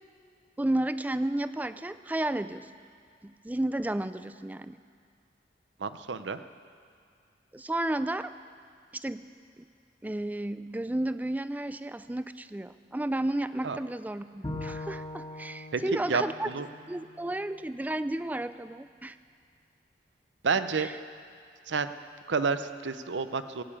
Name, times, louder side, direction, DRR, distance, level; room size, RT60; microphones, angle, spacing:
voice 1, 0.6-2.7 3.2-4.8 7.5-8.3 8.9-9.2 10.0-16.5 16.9-19.2 20.7-20.9, right 1 dB, 10° right, 13 dB, 0.3 m, -32 dB
voice 2, 5.8-6.4 13.6-13.8 15.7-15.8 16.1-16.7 20.4-20.9 21.7-21.9 22.3-23.6, right 5 dB, 85° right, 11 dB, 0.7 m, -29 dB
Bowed string instrument, 14.4-17.7, left 1 dB, 25° left, 1.5 m, -41 dB
16.5 x 8.9 x 8.7 m, 2.3 s
head